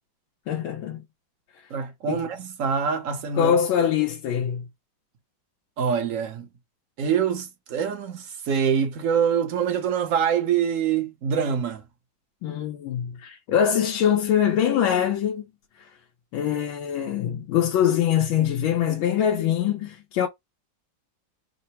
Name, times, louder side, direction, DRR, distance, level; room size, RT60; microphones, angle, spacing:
voice 1, 0.5-1.0 2.1-2.2 3.4-4.7 12.4-15.5 15.8-15.9 16.3-20.3, left 9 dB, 85° left, 1.5 m, -23 dB
voice 2, 1.7-3.6 5.8-6.5 7.0-11.8, right 7 dB, 55° right, 1.0 m, -25 dB
3.8 x 2.1 x 4.2 m
omnidirectional pair, 2.1 m